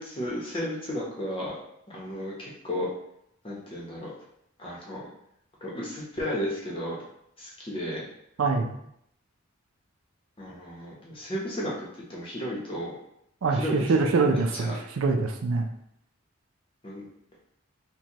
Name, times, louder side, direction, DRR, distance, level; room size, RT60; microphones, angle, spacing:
voice 1, 0.0-1.6 1.9-2.9 3.4-4.1 4.6-5.0 5.6-7.0 7.4-8.0 10.4-12.9 13.5-14.7 16.8-17.1, equal, 25° left, -4 dB, 0.8 m, -34 dB
voice 2, 8.4-8.8 13.4-15.7, right 4 dB, 85° right, 4 dB, 0.5 m, -24 dB
4.4 x 2.2 x 2.9 m, 0.75 s
head